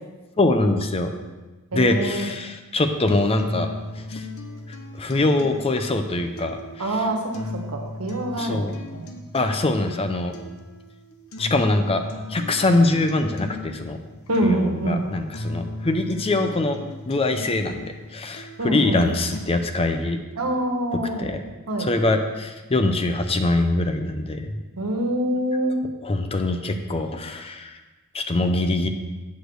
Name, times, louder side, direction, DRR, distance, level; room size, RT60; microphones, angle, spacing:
voice 1, 0.4-1.1 1.7-3.7 4.1-4.2 5.0-6.9 8.4-8.7 9.3-10.3 11.4-12.0 12.3-14.0 14.4-16.8 17.1-20.2 21.2-21.4 21.8-24.6 26.0-27.7 28.1-28.9, left 2 dB, 25° left, 7 dB, 0.6 m, -23 dB
voice 2, 1.7-2.3 6.8-7.3 7.7-8.7 8.9-9.1 14.3-15.1 18.6-19.1 20.4-21.3 21.7-21.9 24.8-25.7, right 1 dB, 85° right, 3 dB, 1.3 m, -25 dB
sound 1, 3.4-19.4, left 2 dB, 70° left, 0.9 m, -37 dB
8.1 x 5.0 x 6.3 m, 1.2 s
head